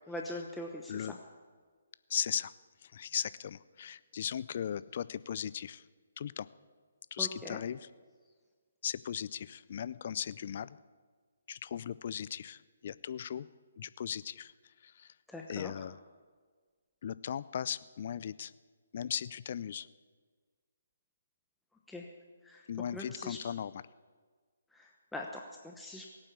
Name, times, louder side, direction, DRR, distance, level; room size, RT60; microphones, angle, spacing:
voice 1, 0.1-1.2 7.2-7.6 15.3-15.7 21.9-22.1 22.4-22.7 22.9-23.4 24.7-26.1, left 1 dB, 5° left, 0 dB, 1.0 m, -42 dB
voice 2, 2.1-2.5 2.8-5.8 6.2-6.5 7.1-7.8 8.8-10.8 11.5-13.5 13.8-14.5 14.8-15.1 15.5-15.9 17.0-18.5 18.9-19.9 22.7-23.8, left 9 dB, 45° left, 18 dB, 0.4 m, -37 dB
17.5 x 8.9 x 8.3 m, 1.6 s
figure-of-eight pair, 140°, 0 cm